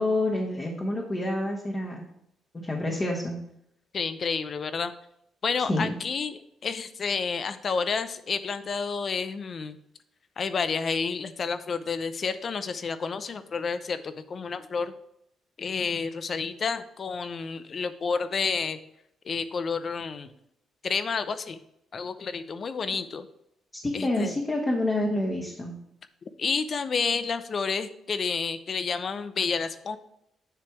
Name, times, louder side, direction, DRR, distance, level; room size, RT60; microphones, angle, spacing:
voice 1, 0.0-2.0 2.6-3.4 5.7-5.9 23.7-25.7, left 1 dB, 25° left, -2 dB, 1.4 m, -28 dB
voice 2, 3.9-4.9 5.4-9.8 10.4-14.9 15.6-18.8 19.2-20.3 20.8-21.6 21.9-23.3 23.9-24.3 26.4-30.0, left 5 dB, 45° left, 12 dB, 0.6 m, -30 dB
9.9 x 3.3 x 4.7 m, 0.78 s
cardioid pair, 90°, 0 cm